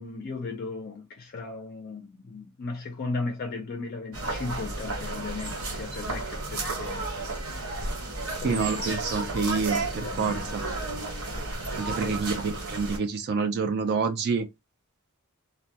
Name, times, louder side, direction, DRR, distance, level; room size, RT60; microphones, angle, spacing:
voice 1, 0.0-7.3 8.2-9.5 9.8-10.5 11.9-12.3, left 3 dB, 45° left, 0.4 m, -36 dB
sound 1, 4.1-13.0, right 2 dB, 65° right, 1.2 m, -32 dB
voice 2, 8.4-10.7 11.8-14.5, right 5 dB, 50° right, 0.3 m, -28 dB
2.1 x 2.1 x 2.7 m
head